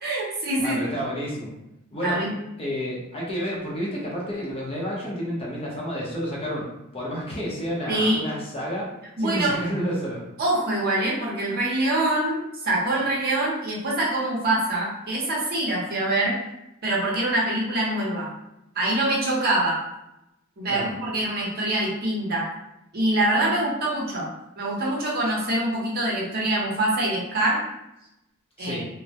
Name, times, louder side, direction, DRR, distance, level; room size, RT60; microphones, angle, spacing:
voice 1, 0.0-0.8 2.0-2.3 7.9-8.2 9.2-9.5 10.4-16.4 16.8-18.3 18.7-19.8 20.6-22.5 22.9-24.3 24.6-27.6 28.6-28.8, right 1 dB, 50° right, -4 dB, 0.7 m, -24 dB
voice 2, 0.6-1.5 1.9-2.2 2.6-8.9 9.2-10.2 20.7-20.9 28.6-28.9, equal, 25° left, -4 dB, 0.6 m, -30 dB
2.2 x 2.0 x 2.7 m, 0.88 s
head